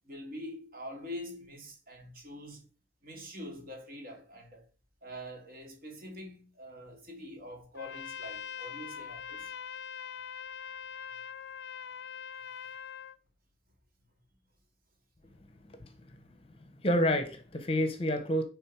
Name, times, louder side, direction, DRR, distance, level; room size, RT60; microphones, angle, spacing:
voice 1, 0.1-2.6 3.0-4.6 5.0-9.5, left 1 dB, 50° right, 2.3 m, -44 dB
Trumpet, 7.7-13.2, left 7 dB, 65° left, 0.4 m, -42 dB
voice 2, 15.7-16.3 16.8-18.4, equal, 30° left, 0.8 m, -29 dB
9.4 x 3.6 x 4.5 m
head